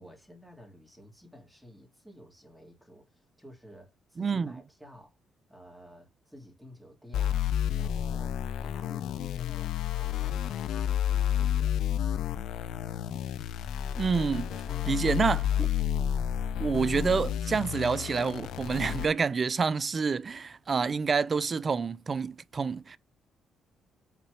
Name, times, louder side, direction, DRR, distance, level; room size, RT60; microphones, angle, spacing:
voice 1, 0.0-5.2 5.5-7.5 7.8-11.7 14.4-15.7, equal, 5° left, 2.9 m, -51 dB
voice 2, 4.2-4.5 14.0-14.4 14.9-15.4 16.6-23.0, right 5 dB, 40° right, 0.5 m, -28 dB
sound 1, 7.1-19.1, left 10 dB, 80° left, 0.6 m, -30 dB
5.8 x 4.1 x 5.1 m
cardioid pair, 90°, 0 cm